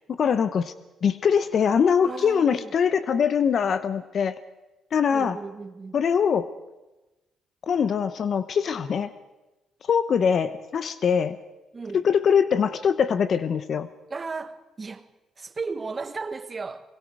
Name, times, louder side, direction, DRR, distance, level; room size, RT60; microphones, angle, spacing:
voice 1, 0.2-0.7 1.0-4.4 4.9-5.4 5.9-6.5 7.6-9.1 9.9-11.4 11.9-13.9, left 7 dB, 55° left, 0.9 m, -22 dB
voice 2, 2.0-2.7 5.1-6.0 11.7-12.0 14.1-15.1 15.4-16.9, right 4 dB, 30° right, 1.5 m, -35 dB
25.0 x 22.0 x 4.8 m
cardioid pair, 90°, 0 cm